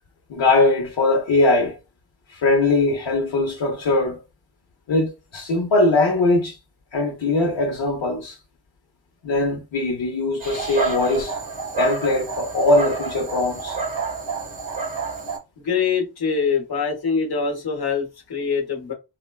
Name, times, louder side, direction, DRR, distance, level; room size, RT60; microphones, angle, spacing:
voice 1, 0.3-1.8 2.3-4.2 4.9-6.6 6.9-8.4 9.2-11.4 11.8-13.8, left 2 dB, 75° left, 0.8 m, -21 dB
Dog, 10.4-15.4, right 4 dB, 90° right, 1.8 m, -28 dB
voice 2, 15.6-18.9, left 5 dB, 55° left, 1.1 m, -24 dB
4.1 x 2.2 x 2.3 m
wide cardioid pair, 115°, 45 cm